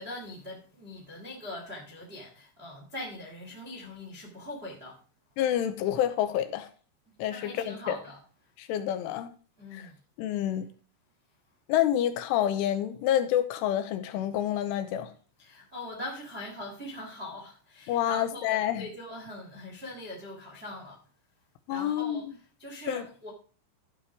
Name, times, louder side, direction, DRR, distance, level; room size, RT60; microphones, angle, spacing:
voice 1, 0.0-5.0 7.3-8.2 9.6-9.9 15.4-21.0 21.7-22.2 22.6-23.3, left 1 dB, 45° right, 0.8 m, -41 dB
voice 2, 5.4-6.7 7.2-8.0 8.6-9.3 9.7-9.9 10.2-10.7 11.7-15.1 17.9-18.9 21.7-22.3 22.9-23.0, left 11 dB, 85° left, 3.3 m, -28 dB
13.0 x 5.3 x 4.8 m
omnidirectional pair, 5.7 m